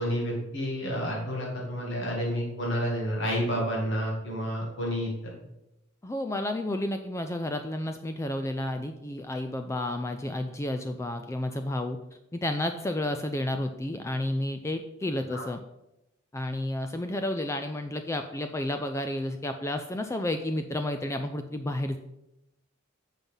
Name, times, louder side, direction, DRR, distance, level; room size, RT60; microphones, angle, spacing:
voice 1, 0.0-5.1 15.3-15.5, equal, 60° left, -2 dB, 2.2 m, -30 dB
voice 2, 6.0-12.0 12.3-15.6 16.3-22.0, left 1 dB, 15° left, 7 dB, 0.3 m, -31 dB
7.4 x 5.5 x 5.4 m, 0.89 s
head